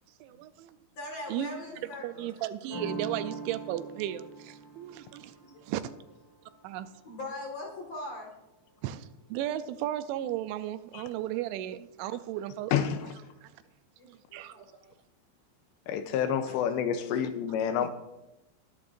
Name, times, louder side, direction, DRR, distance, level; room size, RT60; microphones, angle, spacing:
voice 1, 0.2-0.8 1.3-1.5 2.0-5.3 5.6-5.9 6.6-6.9 8.8-9.0 9.3-12.7 13.4-13.5 14.1-14.7, right 13 dB, 85° right, 2.9 m, -35 dB
voice 2, 1.0-2.3 5.4-5.7 7.0-8.3 14.0-14.9 16.5-16.7 17.0-17.2, left 2 dB, 50° left, 2.3 m, -41 dB
sound 1, 2.7-8.2, right 3 dB, 20° left, 4.8 m, -43 dB
voice 3, 12.7-13.1 15.9-17.9, left 8 dB, 85° left, 2.8 m, -28 dB
20.5 x 9.8 x 2.6 m
omnidirectional pair, 5.4 m